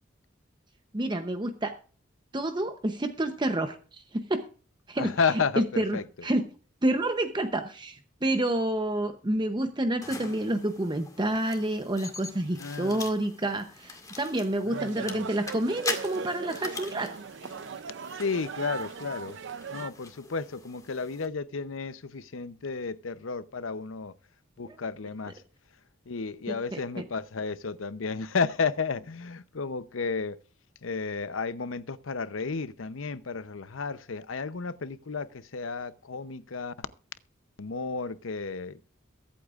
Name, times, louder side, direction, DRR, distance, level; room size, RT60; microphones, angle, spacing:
voice 1, 0.9-1.7 2.3-4.5 4.9-6.5 6.8-17.1 24.6-24.8 26.5-27.0, right 1 dB, 25° right, 0.7 m, -29 dB
voice 2, 5.0-6.0 12.6-13.0 14.7-15.2 18.2-19.4 19.7-24.1 24.6-25.3 26.1-30.4 30.8-36.9 37.6-38.8, left 5 dB, 80° left, 0.7 m, -32 dB
sound 1, 10.0-21.3, left 3 dB, 15° left, 1.9 m, -42 dB
sound 2, 14.7-19.9, right 6 dB, 60° right, 0.5 m, -39 dB
22.5 x 8.5 x 2.5 m
head